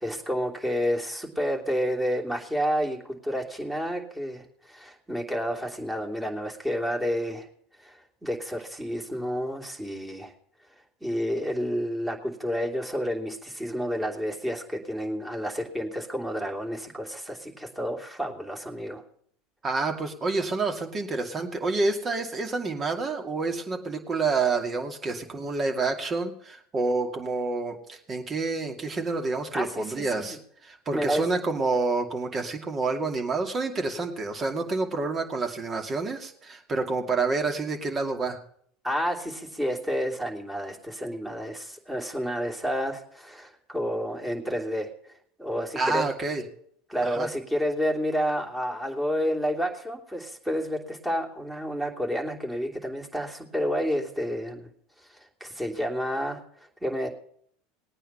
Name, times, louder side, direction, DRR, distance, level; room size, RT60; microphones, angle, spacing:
voice 1, 0.0-4.4 4.7-7.5 7.8-10.3 11.0-19.0 29.5-30.4 30.9-31.2 38.8-44.9 45.4-46.1 46.9-54.7 55.4-56.4 56.8-57.1, equal, 10° right, -1 dB, 3.1 m, -30 dB
voice 2, 19.6-38.4 45.8-46.4 47.0-47.3, right 3 dB, 30° right, 3 dB, 2.4 m, -28 dB
19.5 x 9.0 x 5.7 m, 0.65 s
hypercardioid pair, 75°, 0 cm